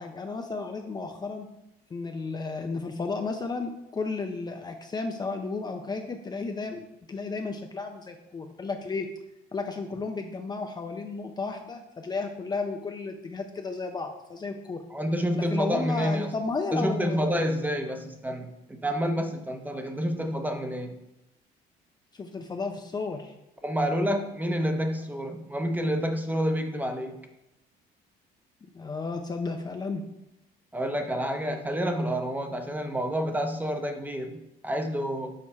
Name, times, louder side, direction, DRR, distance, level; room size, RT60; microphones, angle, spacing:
voice 1, 0.0-1.5 1.9-9.1 9.5-14.8 15.3-17.5 22.1-23.3 28.7-30.0, left 4 dB, 25° left, 4 dB, 0.5 m, -33 dB
voice 2, 14.9-16.3 16.7-21.0 23.6-27.2 30.7-35.3, equal, 10° right, 6 dB, 0.8 m, -29 dB
6.7 x 4.3 x 4.2 m, 0.89 s
cardioid pair, 110°, 17 cm